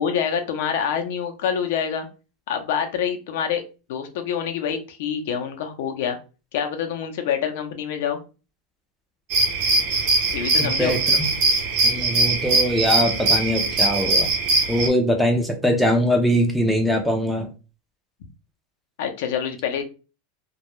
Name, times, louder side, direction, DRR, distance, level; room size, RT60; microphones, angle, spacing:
voice 1, 0.0-2.1 2.5-3.6 3.9-6.2 6.5-8.2 10.3-11.0 19.0-19.8, left 8 dB, 65° left, 6 dB, 0.5 m, -26 dB
sound 1, 9.3-14.9, right 2 dB, 50° right, 0.7 m, -21 dB
voice 2, 10.6-11.3 11.8-14.3 14.7-17.5, equal, ahead, 2 dB, 0.4 m, -22 dB
2.2 x 2.0 x 2.9 m, 0.32 s
supercardioid pair, 160°, 0 cm